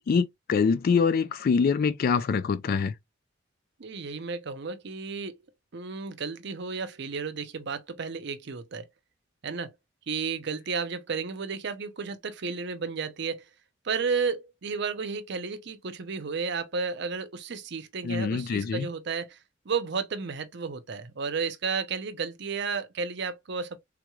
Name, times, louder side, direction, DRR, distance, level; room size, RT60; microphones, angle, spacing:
voice 1, 0.0-2.9 18.0-18.9, left 5 dB, 50° left, 0.3 m, -25 dB
voice 2, 3.8-5.4 5.7-8.9 9.4-9.7 10.1-13.5 13.8-19.4 19.7-23.8, right 5 dB, 65° right, 0.6 m, -32 dB
3.6 x 3.0 x 2.3 m
head